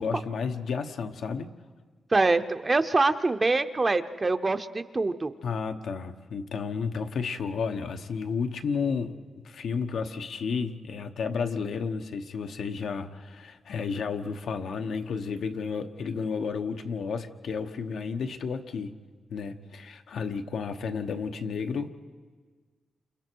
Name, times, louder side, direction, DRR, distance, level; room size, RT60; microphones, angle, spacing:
voice 1, 0.0-1.5 5.4-9.2 9.4-18.9 19.3-21.9, left 5 dB, 80° left, 6 dB, 1.1 m, -32 dB
voice 2, 2.1-5.3, right 3 dB, 25° right, 10 dB, 0.6 m, -24 dB
29.5 x 28.5 x 4.6 m, 1.5 s
wide cardioid pair, 160°, 0 cm